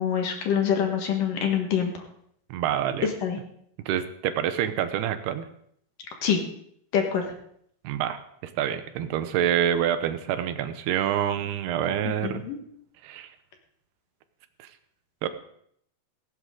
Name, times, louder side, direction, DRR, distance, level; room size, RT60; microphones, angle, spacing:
voice 1, 0.0-1.9 3.0-3.4 6.2-6.4 6.9-7.3 12.2-12.6, left 8 dB, 60° left, 3 dB, 2.9 m, -25 dB
voice 2, 2.5-3.1 3.9-5.5 7.8-12.5 13.0-13.3 14.6-14.7 15.2-15.3, right 10 dB, 80° right, 10 dB, 2.9 m, -27 dB
17.0 x 16.5 x 3.8 m, 0.68 s
omnidirectional pair, 4.6 m